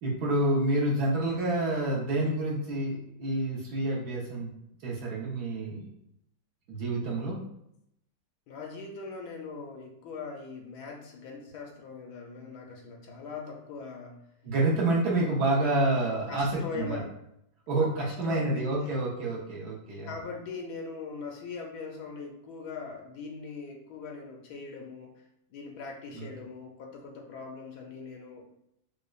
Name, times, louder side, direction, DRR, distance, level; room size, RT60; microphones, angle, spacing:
voice 1, 0.0-4.5 4.8-5.9 6.7-7.4 14.4-17.0 17.7-20.1 26.1-26.3, right 2 dB, 65° right, -4 dB, 1.3 m, -28 dB
voice 2, 8.5-14.2 16.3-17.1 17.7-18.9 20.1-28.4, left 4 dB, 75° left, 1 dB, 1.1 m, -41 dB
5.0 x 2.1 x 2.3 m, 0.77 s
omnidirectional pair, 1.9 m